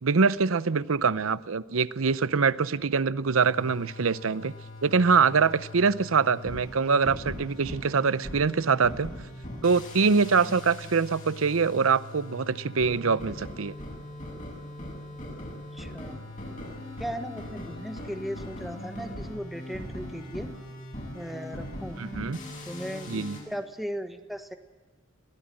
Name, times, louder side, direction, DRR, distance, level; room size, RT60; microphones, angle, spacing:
voice 1, 0.0-4.5 4.8-9.1 9.6-13.7 22.0-22.4 23.1-23.4, right 5 dB, 75° right, 17 dB, 0.7 m, -24 dB
sound 1, 3.4-23.4, left 1 dB, 40° left, 7.4 m, -40 dB
voice 2, 15.7-16.2 17.0-20.5 21.1-22.0 22.7-24.5, equal, ahead, 6 dB, 1.4 m, -37 dB
22.5 x 17.0 x 7.7 m, 1.2 s
head